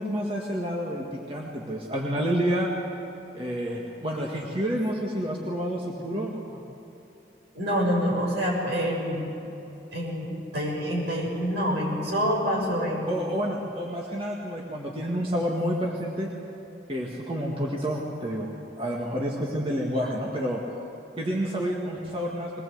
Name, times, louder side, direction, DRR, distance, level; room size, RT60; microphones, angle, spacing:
voice 1, 0.0-2.7 3.3-6.6 13.1-16.3 16.9-20.6 21.2-22.6, equal, 30° right, -2 dB, 1.9 m, -29 dB
voice 2, 7.5-9.2 9.9-13.1, equal, 75° right, -2 dB, 6.9 m, -26 dB
22.0 x 19.5 x 8.0 m, 2.9 s
head